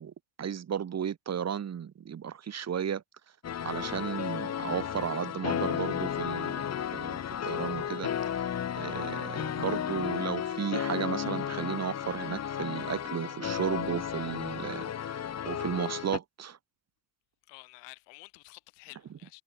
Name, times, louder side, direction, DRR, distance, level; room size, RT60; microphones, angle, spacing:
voice 1, 0.0-3.0 3.6-7.2 7.4-8.4 8.8-16.6, right 8 dB, 40° right, 4.4 m, -34 dB
sound 1, 3.4-16.2, left 9 dB, 35° left, 2.2 m, -33 dB
voice 2, 17.5-19.4, left 31 dB, 85° left, 7.7 m, -51 dB
cardioid pair, 115°, 42 cm